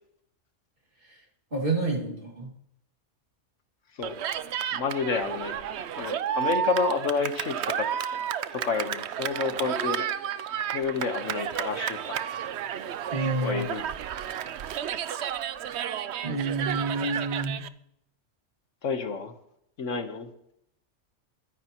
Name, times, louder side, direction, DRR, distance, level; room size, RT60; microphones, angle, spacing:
voice 1, 1.5-2.5 13.1-13.7 16.2-17.6, right 3 dB, 45° right, -1 dB, 2.6 m, -29 dB
Cheering, 4.0-17.7, right 10 dB, 65° right, 0.8 m, -32 dB
voice 2, 4.7-5.5 5.9-7.9 8.1-8.2 8.5-10.1 10.7-12.2 13.4-13.8 18.8-19.3 19.8-20.3, left 5 dB, 75° left, 7 dB, 1.5 m, -29 dB
22.5 x 10.0 x 3.0 m, 0.75 s
omnidirectional pair, 1.3 m